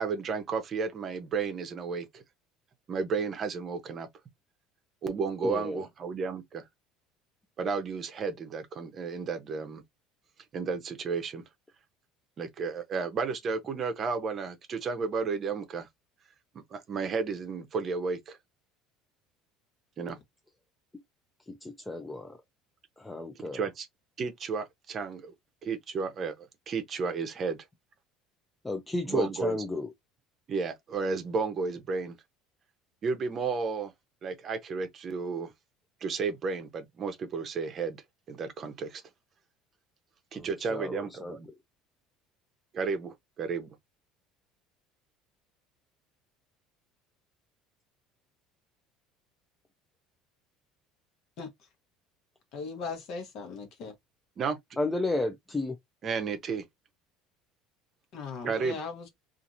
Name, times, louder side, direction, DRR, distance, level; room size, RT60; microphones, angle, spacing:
voice 1, 0.0-2.2 2.9-4.1 5.0-6.6 7.6-9.8 10.5-11.4 12.4-15.9 16.7-18.4 20.0-20.2 23.5-23.9 24.2-25.3 25.6-27.6 29.1-29.6 30.5-32.2 33.0-33.9 34.2-35.5 36.0-38.0 38.3-39.0 40.3-41.5 42.7-43.7 54.4-54.6 56.0-56.6 58.4-58.8, right 5 dB, 35° right, 0.7 m, -32 dB
voice 2, 5.4-5.8 20.9-21.0 21.5-22.4 23.0-23.7 28.6-29.9 40.3-41.4 54.8-55.8, left 2 dB, 10° left, 0.4 m, -33 dB
voice 3, 52.5-53.9 58.1-59.1, left 4 dB, 55° left, 1.0 m, -38 dB
2.8 x 2.5 x 2.5 m
cardioid pair, 130°, 0 cm